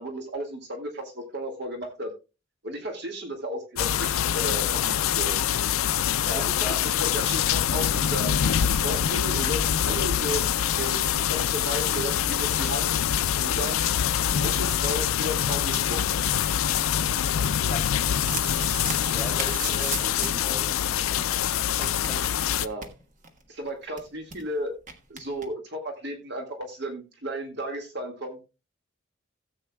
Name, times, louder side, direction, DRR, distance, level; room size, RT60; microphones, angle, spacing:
voice 1, 0.0-2.1 2.6-5.4 6.2-8.3 8.7-10.4 10.8-13.0 13.4-13.8 14.3-16.0 22.6-22.9 23.5-24.7 25.1-28.4, equal, 55° right, 2 dB, 1.9 m, -34 dB
sound 1, 3.8-22.7, left 9 dB, 90° left, 0.4 m, -25 dB
voice 2, 6.2-6.8 10.8-10.9 17.7-18.0 18.5-22.2, left 1 dB, 10° left, -2 dB, 5.9 m, -39 dB
sound 2, 18.1-20.5 20.8-20.9 21.1-21.2 21.5-23.4 23.7-23.8 24.0-24.4 24.9-25.5, right 5 dB, 40° right, 1.3 m, -37 dB
16.5 x 8.1 x 2.3 m, 0.29 s
head